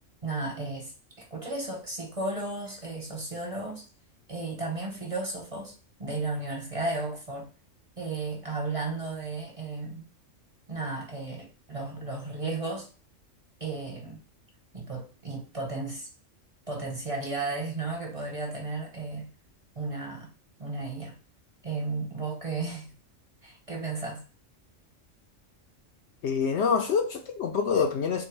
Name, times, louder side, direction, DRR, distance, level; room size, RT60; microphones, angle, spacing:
voice 1, 0.2-0.9 1.2-3.8 4.3-5.7 6.0-7.5 8.0-10.1 10.7-12.9 13.6-14.2 14.7-16.1 16.7-19.3 19.7-20.3 20.6-21.2 21.6-22.9 23.4-24.2, right 3 dB, 30° right, 0.9 m, -34 dB
voice 2, 26.2-28.3, left 6 dB, 65° left, 0.9 m, -26 dB
3.8 x 2.2 x 4.5 m
omnidirectional pair, 1.3 m